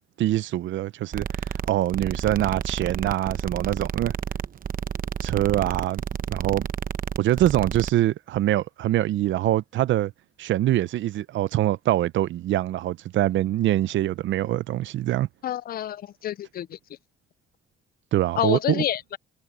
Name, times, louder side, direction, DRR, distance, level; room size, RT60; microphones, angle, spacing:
voice 1, 0.2-1.3 1.7-4.1 5.2-6.0 6.3-6.7 7.2-10.1 10.4-15.3 18.1-18.8, right 13 dB, 70° right, 0.6 m, -24 dB
sound 1, 1.1-7.9, right 8 dB, 45° right, 0.9 m, -30 dB
voice 2, 15.4-16.8 18.4-19.2, left 11 dB, 50° left, 0.4 m, -28 dB
cardioid pair, 90°, 20 cm